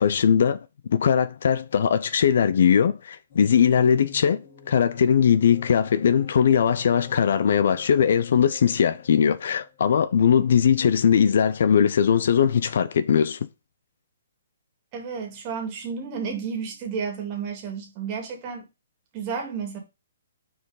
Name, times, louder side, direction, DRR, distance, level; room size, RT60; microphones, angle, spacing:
voice 1, 0.0-13.4, left 7 dB, 60° left, 0.5 m, -20 dB
sound 1, 3.3-9.8, left 7 dB, 35° left, 2.7 m, -48 dB
voice 2, 14.9-18.7 19.1-19.8, right 6 dB, 25° right, 2.0 m, -32 dB
5.9 x 4.6 x 4.8 m
hypercardioid pair, 165°, 0 cm